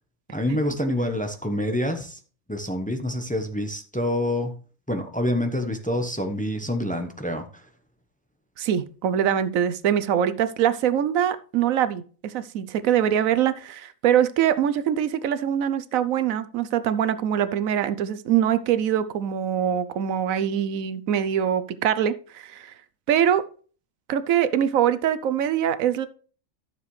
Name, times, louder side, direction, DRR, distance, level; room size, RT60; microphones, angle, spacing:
voice 1, 0.3-2.2 2.5-4.5 4.9-7.6, left 1 dB, 5° left, 1.0 m, -27 dB
voice 2, 8.6-22.7 23.1-23.4 24.1-26.1, right 9 dB, 90° right, 1.1 m, -23 dB
13.0 x 6.8 x 3.2 m
omnidirectional pair, 1.4 m